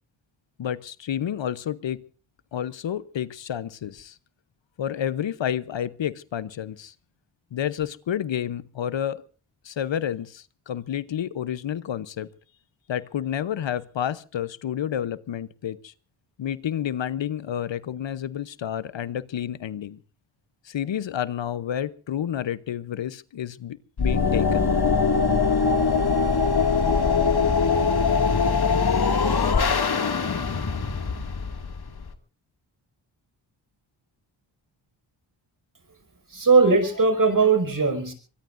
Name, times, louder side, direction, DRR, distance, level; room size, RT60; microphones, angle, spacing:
voice 1, 0.6-2.0 2.5-4.2 4.8-6.9 7.5-9.2 9.6-12.3 12.9-15.9 16.4-20.0 20.6-24.7, left 10 dB, 65° left, 16 dB, 0.9 m, -30 dB
sound 1, 24.0-32.1, left 5 dB, 50° left, 2.2 m, -22 dB
voice 2, 36.3-38.1, right 4 dB, 40° right, 8 dB, 5.8 m, -19 dB
24.0 x 22.0 x 2.6 m, 0.37 s
cardioid pair, 70°, 48 cm